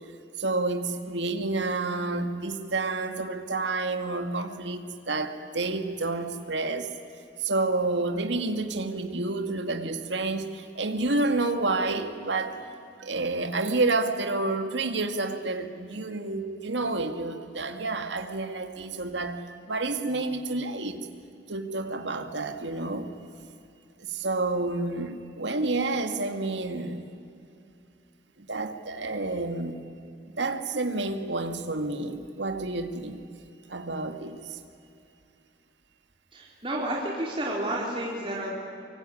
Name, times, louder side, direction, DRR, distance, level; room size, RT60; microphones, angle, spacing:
voice 1, 0.4-4.8 5.1-6.9 7.4-12.6 13.0-19.4 19.7-21.1 21.5-23.1 24.0-27.0 28.5-29.8 30.4-33.2 33.7-34.4, right 2 dB, 80° right, 2.0 m, -29 dB
voice 2, 36.3-38.5, right 1 dB, 30° right, 3.9 m, -31 dB
24.0 x 24.0 x 9.8 m
head